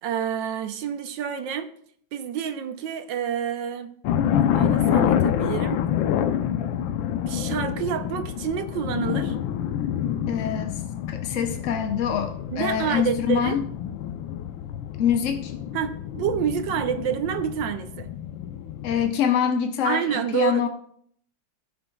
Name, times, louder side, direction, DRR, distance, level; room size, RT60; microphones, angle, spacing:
voice 1, 0.0-1.7 2.1-3.9 4.5-5.8 7.3-9.4 12.5-13.6 15.7-18.1 19.8-20.7, right 8 dB, 75° right, 9 dB, 1.3 m, -28 dB
sound 1, 4.0-19.1, left 9 dB, 80° left, 1.4 m, -27 dB
voice 2, 10.3-10.8 11.1-13.6 15.0-15.5 18.8-20.7, left 8 dB, 65° left, 5 dB, 0.8 m, -25 dB
16.5 x 6.9 x 2.3 m, 0.63 s
omnidirectional pair, 2.1 m